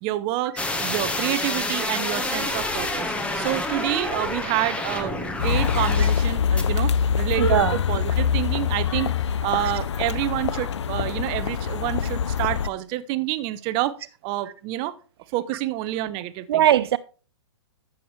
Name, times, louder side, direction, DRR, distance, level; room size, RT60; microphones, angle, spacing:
voice 1, 0.0-9.1 9.4-14.0 14.2-14.9 15.3-16.6, right 15 dB, 35° right, 0.8 m, -28 dB
sound 1, 0.6-6.3 6.6-6.7, left 2 dB, 10° left, 1.2 m, -28 dB
sound 2, 5.4-12.7, left 7 dB, 70° left, 0.6 m, -24 dB
voice 2, 7.4-7.8 16.5-17.0, right 12 dB, 55° right, 0.4 m, -19 dB
12.5 x 7.3 x 3.2 m
hypercardioid pair, 120°, 15 cm